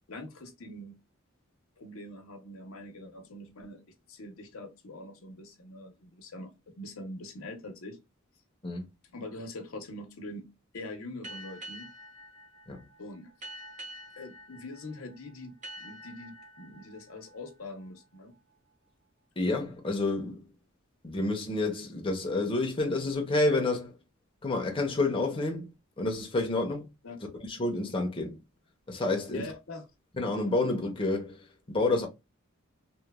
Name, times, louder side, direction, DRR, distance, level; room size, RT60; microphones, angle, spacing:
voice 1, 0.1-1.0 1.8-3.8 4.1-8.0 9.1-10.5 10.7-11.9 13.0-13.3 14.2-18.3 27.0-27.2 29.3-29.8, left 1 dB, 90° left, 0.8 m, -43 dB
sound 1, 11.2-18.5, right 1 dB, 35° right, 0.8 m, -48 dB
voice 2, 19.4-20.4 21.0-23.9 24.4-25.7 26.0-26.9 27.4-28.4 28.9-29.5 30.2-32.1, left 2 dB, 25° left, 0.6 m, -29 dB
3.0 x 2.1 x 2.2 m
head